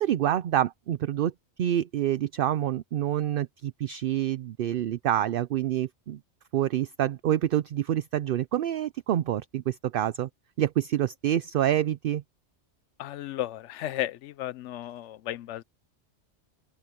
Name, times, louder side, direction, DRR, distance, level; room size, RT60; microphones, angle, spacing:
voice 1, 0.0-1.3 1.6-6.2 6.5-10.3 10.6-12.2, right 11 dB, 60° right, 0.6 m, -27 dB
voice 2, 13.0-15.6, left 13 dB, 80° left, 0.9 m, -34 dB
open air
omnidirectional pair, 1.2 m